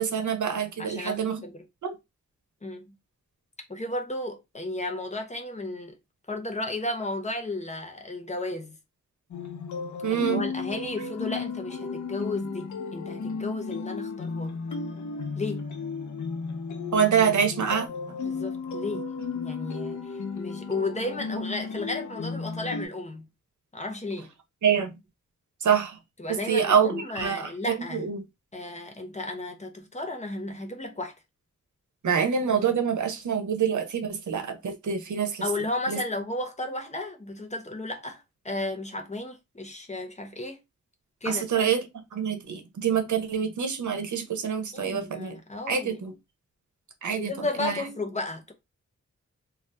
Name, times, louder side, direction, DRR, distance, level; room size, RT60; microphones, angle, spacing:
voice 1, 0.0-1.4 1.8-2.0 10.0-10.4 16.9-18.2 24.6-25.0 25.6-26.0 26.3-28.2 32.0-35.5 35.9-36.0 41.2-45.4 45.7-46.1 47.0-47.8, right 7 dB, 85° right, 0.7 m, -26 dB
voice 2, 0.8-1.6 2.6-2.9 3.7-6.0 6.3-8.8 10.1-14.6 15.4-15.7 18.2-23.3 23.7-24.3 26.2-28.1 28.5-31.1 35.4-40.6 41.2-41.7 44.7-46.0 47.1-48.5, left 2 dB, 25° left, 0.7 m, -34 dB
sound 1, 9.3-22.9, left 5 dB, 85° left, 0.6 m, -34 dB
2.6 x 2.4 x 3.3 m
wide cardioid pair, 120°, 29 cm